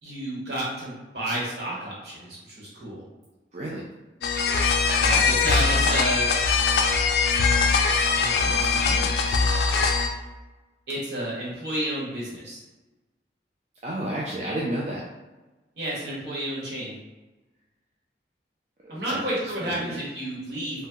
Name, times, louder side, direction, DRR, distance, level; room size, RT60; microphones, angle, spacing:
voice 1, 0.0-3.0 5.0-6.3 8.0-9.4 10.9-12.6 15.7-16.9 18.9-20.9, right 1 dB, 65° right, -6 dB, 1.1 m, -31 dB
voice 2, 3.5-3.9 5.1-5.3 13.8-15.1 18.8-20.0, right 1 dB, 40° right, -4 dB, 0.3 m, -32 dB
sound 1, 4.2-10.1, left 4 dB, 65° left, 0.3 m, -22 dB
2.8 x 2.1 x 3.4 m, 1.1 s
head